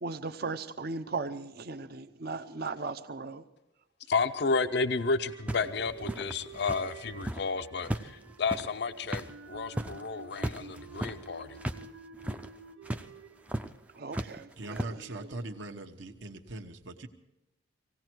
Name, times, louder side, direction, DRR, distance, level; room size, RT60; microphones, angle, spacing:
voice 1, 0.0-3.4 14.0-15.3, right 3 dB, 50° right, 9 dB, 0.7 m, -37 dB
voice 2, 4.1-11.6, left 4 dB, 55° left, 11 dB, 0.6 m, -31 dB
sound 1, 5.3-14.5, right 5 dB, 85° right, 0.6 m, -50 dB
sound 2, 5.5-7.5 7.8-11.9 12.1-12.5 12.8-13.0 13.5-13.7 14.1-14.8, right 1 dB, 5° right, 0.5 m, -36 dB
voice 3, 14.5-17.1, right 2 dB, 70° right, 4 dB, 1.2 m, -41 dB
18.0 x 17.0 x 4.6 m, 0.94 s
head